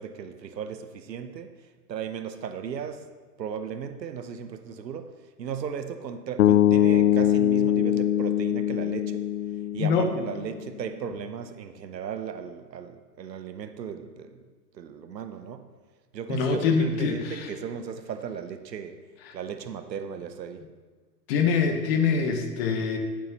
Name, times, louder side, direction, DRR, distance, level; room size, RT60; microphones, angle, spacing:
voice 1, 0.0-1.5 1.9-3.1 3.4-9.2 9.7-14.4 14.7-15.7 16.1-19.0 19.3-20.6, right 7 dB, 85° right, 0.9 m, -36 dB
sound 1, 6.4-10.5, left 11 dB, 60° left, 0.5 m, -22 dB
voice 2, 9.8-10.1 16.3-17.5 19.2-19.4 21.3-23.0, left 5 dB, 35° left, 1.1 m, -24 dB
12.5 x 7.5 x 3.0 m
hypercardioid pair, 135°, 49 cm